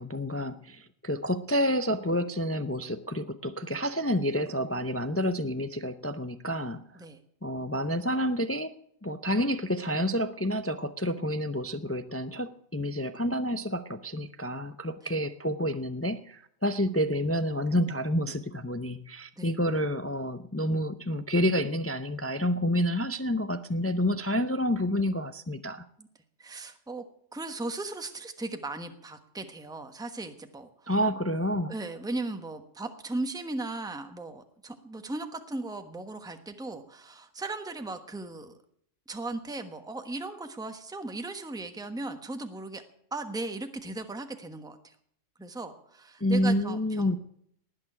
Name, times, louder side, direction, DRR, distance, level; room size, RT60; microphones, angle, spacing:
voice 1, 0.0-6.8 7.4-8.7 9.0-25.8 30.9-31.7 46.2-47.2, equal, 20° left, 11 dB, 0.3 m, -29 dB
voice 2, 26.4-27.0 27.3-30.9 31.7-38.5 39.1-42.8 43.1-44.9 45.4-47.2, right 2 dB, 5° right, 7 dB, 1.1 m, -37 dB
19.0 x 6.7 x 9.9 m, 0.69 s
omnidirectional pair, 1.3 m